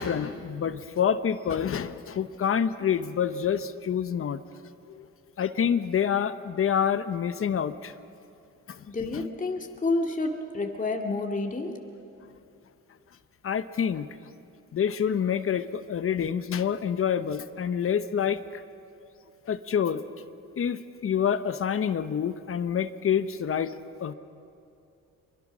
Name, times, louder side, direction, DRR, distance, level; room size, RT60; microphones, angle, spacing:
voice 1, 0.0-4.4 4.9-5.0 5.4-7.9 8.7-8.8 13.4-14.1 14.7-18.6 19.5-20.0 20.6-24.1, left 8 dB, 45° left, 12 dB, 0.9 m, -27 dB
voice 2, 8.9-11.8, left 2 dB, 25° left, 2 dB, 2.2 m, -29 dB
25.5 x 23.0 x 6.2 m, 2.6 s
cardioid pair, 90°, 30 cm